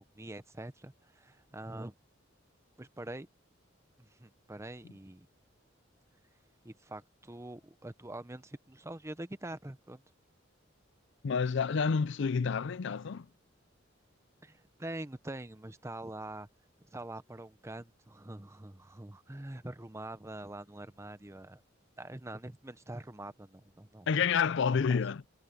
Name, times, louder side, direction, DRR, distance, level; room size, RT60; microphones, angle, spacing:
voice 1, 0.0-1.9 2.8-3.3 4.0-5.3 6.6-10.0 14.4-16.5 16.9-21.6 22.0-24.1 24.7-24.8, right 1 dB, 15° right, 0.8 m, -44 dB
voice 2, 11.2-13.3 24.1-25.2, left 6 dB, 65° left, 0.5 m, -29 dB
head